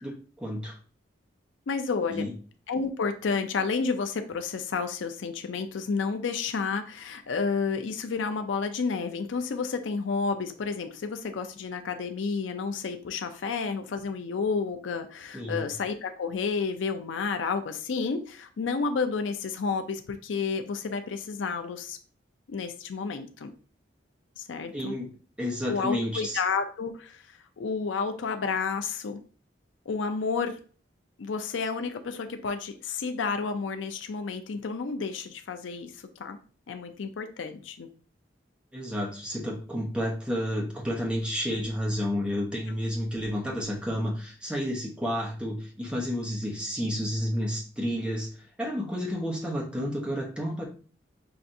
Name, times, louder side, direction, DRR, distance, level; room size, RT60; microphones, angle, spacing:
voice 1, 0.0-0.8 2.1-2.3 15.3-15.7 24.7-25.1 25.4-26.4 38.7-48.3 48.6-50.6, equal, 5° right, -2 dB, 0.8 m, -31 dB
voice 2, 1.7-2.3 2.7-22.0 22.5-23.5 24.4-24.9 25.7-29.2 29.9-30.6 31.2-36.4 36.7-37.9, left 5 dB, 90° left, 7 dB, 0.5 m, -31 dB
5.7 x 2.5 x 2.6 m, 0.40 s
head